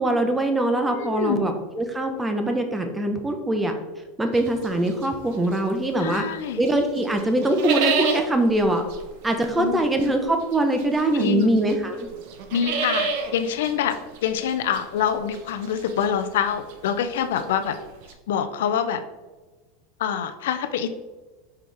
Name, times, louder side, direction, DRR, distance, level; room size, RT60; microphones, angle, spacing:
voice 1, 0.0-3.7 4.2-6.3 6.6-8.8 9.2-12.1, right 1 dB, 10° right, 5 dB, 0.8 m, -23 dB
voice 2, 0.9-1.5 6.0-6.6 9.6-9.8 11.1-11.5 12.5-13.9 14.2-17.8 18.3-19.0 20.0-20.9, left 8 dB, 80° left, 9 dB, 0.6 m, -25 dB
sound 1, 4.3-6.3 6.7-18.1, right 5 dB, 65° right, 0.8 m, -31 dB
5.8 x 4.7 x 3.4 m, 1.2 s
supercardioid pair, 125°, 0 cm